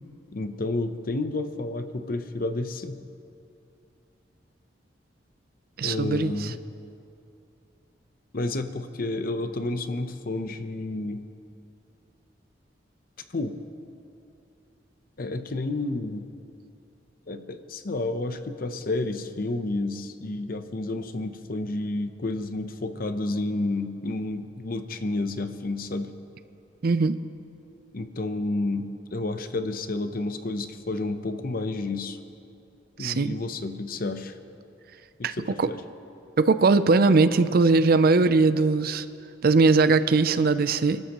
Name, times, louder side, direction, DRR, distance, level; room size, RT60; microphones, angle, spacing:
voice 1, 0.3-3.0 5.8-6.6 8.3-11.2 13.3-13.5 15.2-16.3 17.3-26.1 27.9-32.2 33.0-34.4 35.2-35.8, left 2 dB, 50° left, 9 dB, 0.7 m, -30 dB
voice 2, 5.8-6.3 26.8-27.2 33.0-33.4 35.2-35.7 36.4-39.1 39.4-41.0, right 3 dB, 55° right, 13 dB, 0.5 m, -20 dB
29.0 x 13.0 x 3.0 m, 2.6 s
head